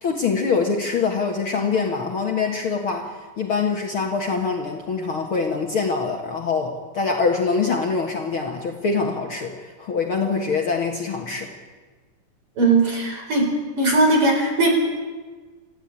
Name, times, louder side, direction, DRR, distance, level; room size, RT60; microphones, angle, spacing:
voice 1, 0.0-11.5, left 4 dB, 50° left, 1 dB, 2.1 m, -24 dB
voice 2, 12.6-13.5 13.8-14.7, right 2 dB, 40° right, 2 dB, 5.2 m, -19 dB
27.0 x 15.0 x 8.9 m, 1.4 s
omnidirectional pair, 3.7 m